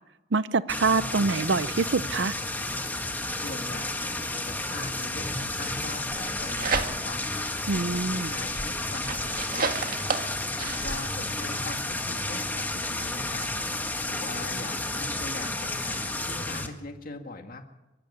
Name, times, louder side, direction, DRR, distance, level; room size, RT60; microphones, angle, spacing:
voice 1, 0.3-2.3 7.7-8.3, right 4 dB, 70° right, 15 dB, 0.6 m, -25 dB
sound 1, 0.7-16.7, left 2 dB, 10° left, 1.8 m, -32 dB
voice 2, 3.4-7.5 8.1-9.7 10.4-13.5 14.1-17.6, left 3 dB, 50° left, 5 dB, 2.0 m, -41 dB
sound 2, 6.1-7.3 7.7-11.0, right 4 dB, 50° right, 1.8 m, -32 dB
24.0 x 13.0 x 9.6 m, 1.0 s
head